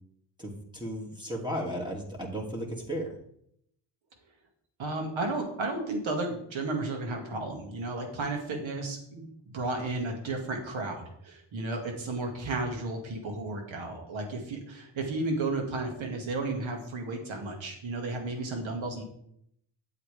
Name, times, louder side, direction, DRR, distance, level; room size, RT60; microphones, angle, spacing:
voice 1, 0.4-3.1, equal, 10° right, -1 dB, 2.8 m, -35 dB
voice 2, 4.8-19.0, right 2 dB, 70° right, 3 dB, 2.4 m, -33 dB
8.3 x 8.2 x 3.5 m, 0.71 s
supercardioid pair, 50°, 48 cm